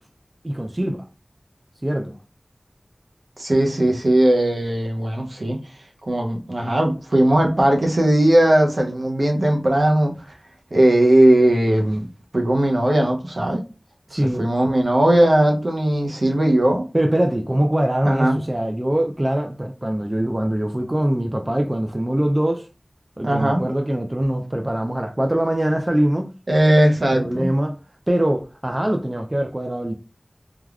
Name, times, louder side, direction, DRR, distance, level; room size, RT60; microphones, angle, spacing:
voice 1, 0.4-1.1 1.8-2.1 14.1-14.5 16.9-22.6 23.2-26.3 27.1-27.8 28.1-29.9, right 1 dB, 30° right, 0.3 m, -22 dB
voice 2, 3.4-5.6 6.1-10.1 10.7-12.1 12.3-13.6 14.1-16.9 18.1-18.4 23.2-23.6 26.5-27.5, right 1 dB, 75° right, 0.6 m, -18 dB
3.3 x 2.2 x 2.3 m
wide cardioid pair, 50°, 0 cm